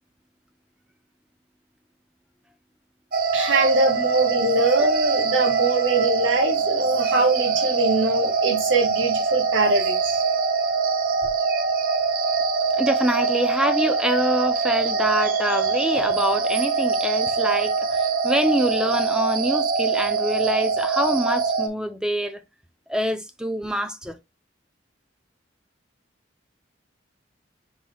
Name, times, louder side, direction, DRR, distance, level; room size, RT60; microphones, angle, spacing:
sound 1, 3.1-21.7, right 4 dB, 50° right, 0.6 m, -23 dB
voice 1, 3.3-10.2, right 2 dB, 85° right, 1.6 m, -22 dB
voice 2, 12.7-22.4 22.9-24.1, equal, 5° right, 0.5 m, -25 dB
6.1 x 3.7 x 2.2 m
head